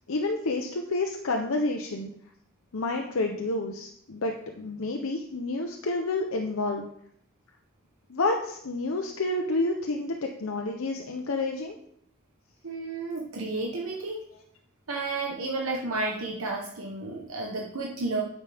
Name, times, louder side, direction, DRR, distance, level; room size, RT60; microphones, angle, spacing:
voice 1, 0.1-2.1 2.7-6.9 8.1-11.7, left 2 dB, 80° left, 2 dB, 0.8 m, -29 dB
voice 2, 12.6-14.2 14.9-18.2, right 3 dB, 90° right, -1 dB, 1.1 m, -32 dB
9.0 x 7.2 x 3.5 m, 0.70 s
head